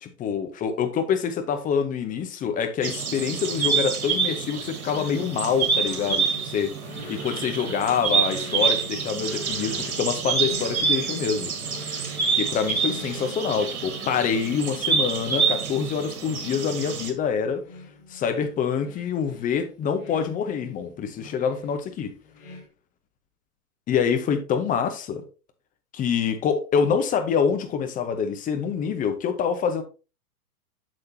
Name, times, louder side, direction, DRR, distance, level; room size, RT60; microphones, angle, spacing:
voice 1, 0.0-6.8 7.1-11.5 12.3-17.6 18.1-22.1 23.9-25.2 25.9-29.8, left 7 dB, 20° left, 0.9 m, -26 dB
sound 1, 2.8-17.1, right 6 dB, 70° right, 2.1 m, -27 dB
sound 2, 4.9-22.7, left 3 dB, 60° left, 3.3 m, -44 dB
8.1 x 6.5 x 2.8 m
figure-of-eight pair, 110°, 44 cm